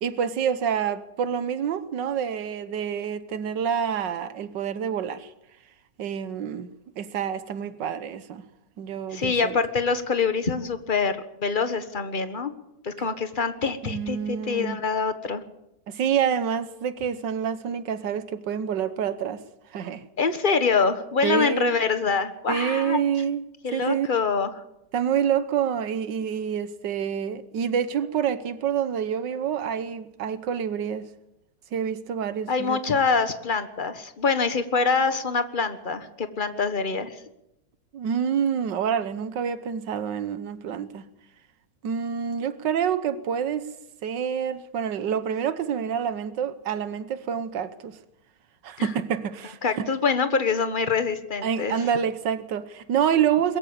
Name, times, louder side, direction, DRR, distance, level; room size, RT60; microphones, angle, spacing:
voice 1, 0.0-5.3 6.0-6.7 7.0-8.4 8.8-9.6 13.8-14.8 15.9-19.4 19.7-20.1 21.2-21.8 22.5-23.4 23.7-24.1 24.9-31.1 31.7-32.8 37.9-41.1 41.8-43.7 44.0-48.0 48.6-49.8 51.4-53.6, right 8 dB, 85° right, 1.7 m, -27 dB
voice 2, 9.1-12.5 12.8-15.4 20.2-23.0 23.6-24.5 32.5-37.2 48.8-48.9 49.6-51.7, left 5 dB, 30° left, 1.5 m, -25 dB
22.5 x 14.5 x 8.7 m
omnidirectional pair, 1.9 m